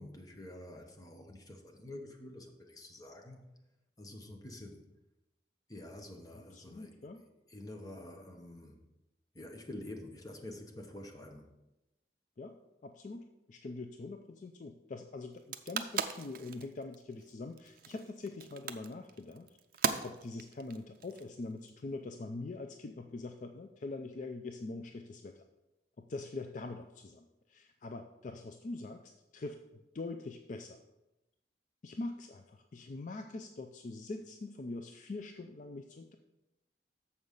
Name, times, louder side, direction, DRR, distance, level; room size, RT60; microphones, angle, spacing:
voice 1, 0.0-3.4 4.0-4.8 5.7-7.0 7.5-8.8 9.3-11.5, left 1 dB, 20° left, 2 dB, 1.0 m, -48 dB
voice 2, 6.3-7.2 12.4-19.5 19.7-25.4 26.0-29.6 29.9-30.8 31.8-36.1, left 3 dB, 45° left, 6 dB, 0.4 m, -43 dB
sound 1, 15.3-21.7, right 6 dB, 55° right, 0.5 m, -38 dB
7.0 x 5.4 x 6.5 m, 0.96 s
head